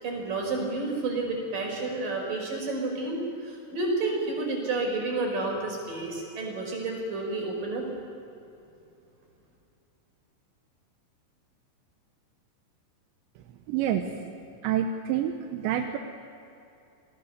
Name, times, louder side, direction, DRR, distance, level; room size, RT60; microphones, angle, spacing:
voice 1, 0.0-3.2 3.4-7.9, right 3 dB, 50° right, 0 dB, 6.5 m, -30 dB
voice 2, 13.7-14.0 14.6-16.0, right 10 dB, 80° right, 5 dB, 3.2 m, -27 dB
30.0 x 20.0 x 6.8 m, 2.7 s
omnidirectional pair, 5.3 m